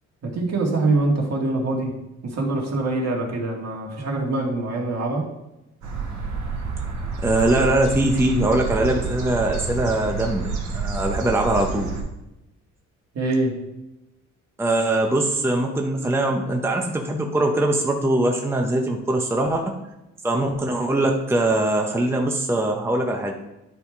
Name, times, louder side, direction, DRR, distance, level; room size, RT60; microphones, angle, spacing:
voice 1, 0.2-1.9 2.2-5.3 13.1-13.6, right 2 dB, 55° right, -2 dB, 2.1 m, -24 dB
sound 1, 5.8-12.0, right 4 dB, 75° right, 1.9 m, -29 dB
voice 2, 7.2-10.5 10.7-11.9 14.6-19.6 20.2-23.3, right 1 dB, 10° right, 2 dB, 0.8 m, -22 dB
9.8 x 3.6 x 4.7 m, 0.93 s
cardioid pair, 90°, 30 cm